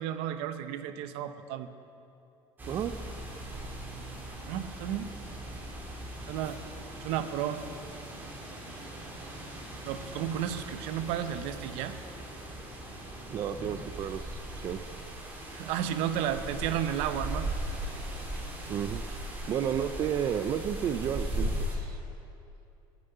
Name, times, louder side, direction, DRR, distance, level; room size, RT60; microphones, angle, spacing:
voice 1, 0.0-1.7 4.4-5.1 6.3-6.6 7.0-7.6 9.8-12.0 15.5-17.5, right 10 dB, 75° right, 11 dB, 0.8 m, -33 dB
sound 1, 2.6-21.8, right 1 dB, 20° right, 2.2 m, -39 dB
voice 2, 13.3-14.8 18.7-19.0 19.5-22.0, right 9 dB, 35° right, 10 dB, 0.4 m, -32 dB
16.0 x 7.4 x 9.1 m, 2.7 s
cardioid pair, 165°, 10 cm